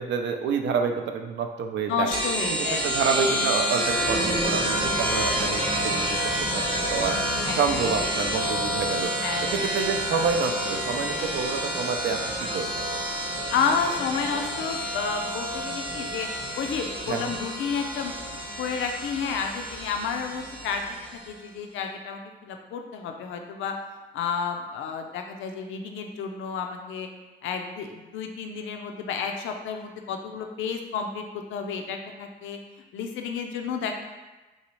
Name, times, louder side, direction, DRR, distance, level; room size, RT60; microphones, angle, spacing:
voice 1, 0.0-2.1 2.5-6.5 6.9-7.2 7.6-9.1 9.5-13.0 17.1-17.4, right 5 dB, 65° right, 4 dB, 0.4 m, -28 dB
voice 2, 1.9-2.8 7.4-7.6 9.2-9.6 13.5-16.3 16.6-18.3 18.6-21.0 21.3-23.7 24.1-27.1 27.4-32.6 32.9-33.9, left 6 dB, 80° left, 4 dB, 0.5 m, -31 dB
sound 1, 2.1-21.3, equal, 25° right, 0.7 m, -29 dB
3.2 x 2.7 x 3.0 m, 1.2 s
cardioid pair, 90°, 20 cm